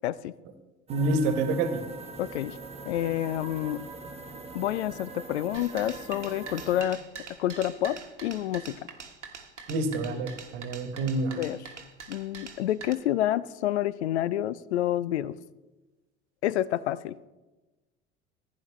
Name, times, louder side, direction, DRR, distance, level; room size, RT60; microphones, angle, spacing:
sound 1, 0.9-6.8, right 4 dB, 15° right, 1.3 m, -42 dB
voice 1, 0.9-1.8 9.7-11.4, right 2 dB, 55° right, 8 dB, 1.4 m, -27 dB
voice 2, 2.2-2.6 2.9-3.8 4.5-7.0 7.4-8.8 11.3-11.6 12.1-15.4 16.4-17.2, left 12 dB, 70° left, 19 dB, 0.5 m, -28 dB
sound 2, 5.5-12.9, right 5 dB, 85° right, 1.1 m, -44 dB
15.0 x 10.0 x 3.1 m, 1.1 s
figure-of-eight pair, 65°, 35 cm